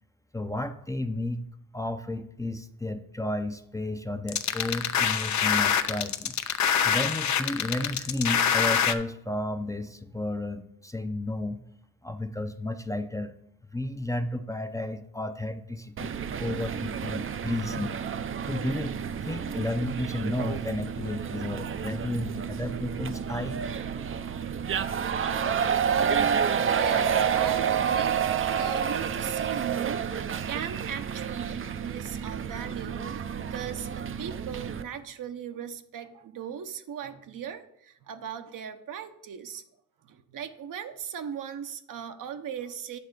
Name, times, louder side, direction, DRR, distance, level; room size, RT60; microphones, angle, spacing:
voice 1, 0.3-1.4 1.7-6.4 6.8-11.6 12.0-13.4 13.7-18.0 18.4-18.9 19.2-23.6, left 1 dB, 10° left, 8 dB, 0.5 m, -32 dB
sound 1, 4.3-8.9, left 8 dB, 60° left, 0.6 m, -25 dB
sound 2, 16.0-34.8, right 7 dB, 40° right, 0.5 m, -29 dB
voice 2, 25.9-39.6 40.0-43.0, right 8 dB, 70° right, 8 dB, 0.8 m, -38 dB
8.6 x 3.6 x 6.5 m, 0.73 s
cardioid pair, 75°, 33 cm